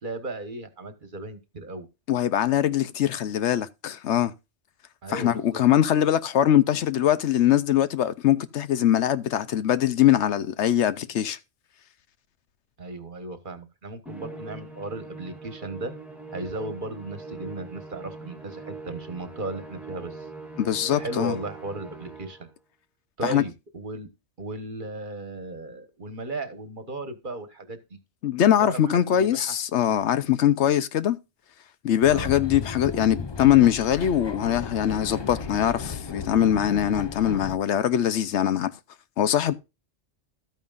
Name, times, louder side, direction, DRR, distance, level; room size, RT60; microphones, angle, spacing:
voice 1, 0.0-1.9 5.0-5.6 12.8-15.9 16.3-20.3 20.9-22.5 23.2-24.1 24.4-28.0 28.6-29.5 32.1-32.3, right 2 dB, 45° right, 1.4 m, -36 dB
voice 2, 2.1-4.3 5.1-11.4 20.6-21.3 23.2-23.4 28.2-31.2 31.8-38.7 39.2-39.5, left 10 dB, 75° left, 1.0 m, -22 dB
Musical instrument, 14.1-22.5, right 3 dB, ahead, 1.6 m, -42 dB
sound 1, 32.0-37.6, left 5 dB, 35° left, 0.5 m, -35 dB
13.0 x 9.1 x 2.5 m
omnidirectional pair, 1.2 m